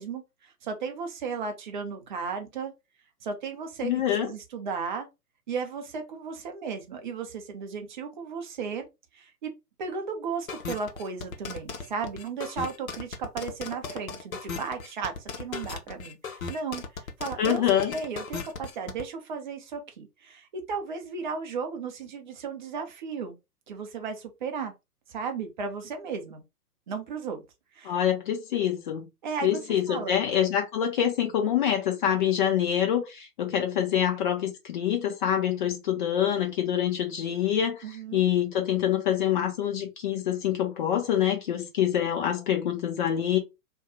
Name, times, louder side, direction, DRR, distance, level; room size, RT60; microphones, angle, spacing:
voice 1, 0.0-2.7 3.2-3.9 4.2-5.1 5.5-8.9 9.1-9.5 9.8-16.8 17.2-17.6 17.9-23.4 23.7-24.7 25.1-26.4 26.9-27.4 27.7-28.0 29.2-29.6 29.9-30.2 37.8-38.3, right 5 dB, 30° right, 0.6 m, -35 dB
voice 2, 3.8-4.3 17.4-17.9 27.8-29.1 29.4-43.4, left 10 dB, 30° left, 0.8 m, -26 dB
sound 1, 10.5-19.0, left 5 dB, 60° left, 0.8 m, -36 dB
2.7 x 2.2 x 3.5 m
figure-of-eight pair, 120°, 47 cm